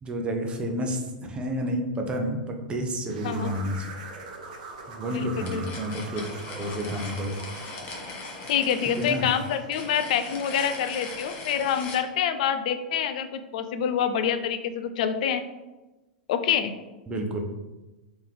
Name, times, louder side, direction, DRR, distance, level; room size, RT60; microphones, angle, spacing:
voice 1, 0.0-3.9 4.9-6.2 6.5-7.4 8.9-9.3 17.1-17.5, equal, 20° right, 3 dB, 0.7 m, -30 dB
sound 1, 3.1-9.8, right 3 dB, 60° right, 0.7 m, -43 dB
voice 2, 5.1-5.6 8.5-15.4 16.3-16.7, left 8 dB, 60° left, 9 dB, 0.4 m, -26 dB
sound 2, 5.5-12.0, left 3 dB, 40° left, 1.0 m, -39 dB
3.3 x 3.0 x 3.7 m, 1.1 s
figure-of-eight pair, 95°, 5 cm